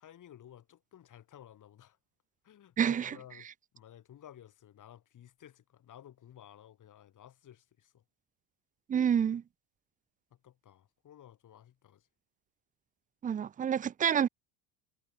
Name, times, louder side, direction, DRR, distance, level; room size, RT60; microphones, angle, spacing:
voice 1, 0.0-2.0 2.4-3.5 3.7-8.0 10.3-12.1, left 11 dB, 40° left, 5.4 m, -55 dB
voice 2, 2.8-3.1 8.9-9.4 13.2-14.3, right 8 dB, 15° right, 0.5 m, -28 dB
cardioid pair, 145°, 49 cm